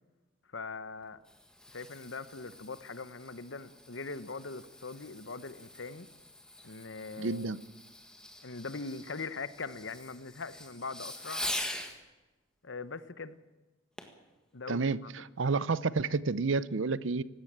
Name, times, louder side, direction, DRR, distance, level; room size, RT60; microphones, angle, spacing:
voice 1, 0.5-1.2 1.7-6.1 6.6-7.5 8.4-11.4 12.6-13.4 14.5-15.1, left 4 dB, 65° left, 1.0 m, -41 dB
Fireworks, 1.0-12.0 14.0-14.2 14.8-14.9, left 1 dB, 5° left, 1.7 m, -44 dB
voice 2, 7.2-7.6 14.7-17.2, right 4 dB, 70° right, 0.6 m, -30 dB
18.5 x 17.0 x 8.8 m
head